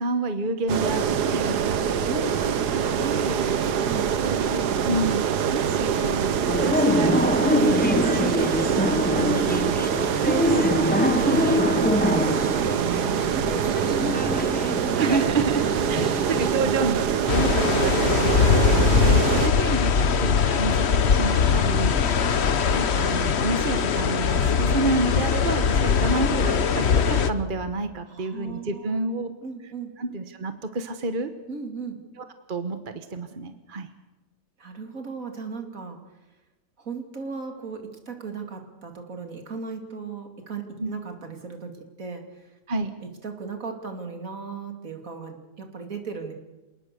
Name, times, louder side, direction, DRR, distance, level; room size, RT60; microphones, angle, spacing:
voice 1, 0.0-2.5 2.8-3.9 4.2-5.3 5.5-7.2 7.5-9.8 10.2-13.4 14.0-14.2 15.0-29.3 30.0-31.3 32.5-33.9 40.8-40.9 42.7-42.9, right 3 dB, 35° right, 9 dB, 1.2 m, -30 dB
sound 1, 0.7-19.5, right 7 dB, 75° right, 1.6 m, -25 dB
voice 2, 2.1-2.7 3.5-4.7 13.3-15.7 17.0-17.2 21.9-22.4 28.1-29.0 29.3-29.9 31.5-32.0 34.6-36.0 36.8-41.7 42.0-42.5 43.0-46.3, right 4 dB, 55° right, 5 dB, 3.0 m, -36 dB
sound 2, 6.4-16.5, left 1 dB, 5° left, 1.0 m, -25 dB
sound 3, 17.3-27.3, left 6 dB, 45° left, 1.1 m, -21 dB
28.0 x 18.5 x 6.8 m, 1.1 s
omnidirectional pair, 1.7 m